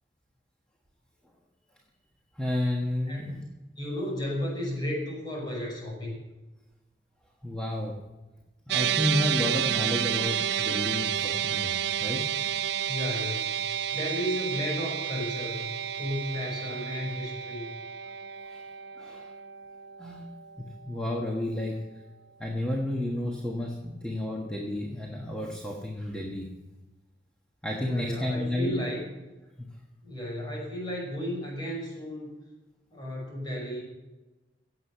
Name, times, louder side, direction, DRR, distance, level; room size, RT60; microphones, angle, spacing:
voice 1, 2.3-3.4 7.4-8.0 8.7-11.7 12.0-12.3 18.5-18.6 19.0-19.3 20.0-20.2 20.6-21.8 22.4-26.5 27.6-28.8 29.6-29.7, left 1 dB, 5° left, -1 dB, 1.4 m, -31 dB
voice 2, 3.1-3.4 3.8-6.2 12.8-17.7 27.8-29.0 30.0-32.3 32.9-33.8, equal, 25° left, -2 dB, 5.7 m, -34 dB
sound 1, 8.7-21.1, right 9 dB, 65° right, 0.4 m, -31 dB
17.0 x 7.9 x 5.8 m, 1.1 s
head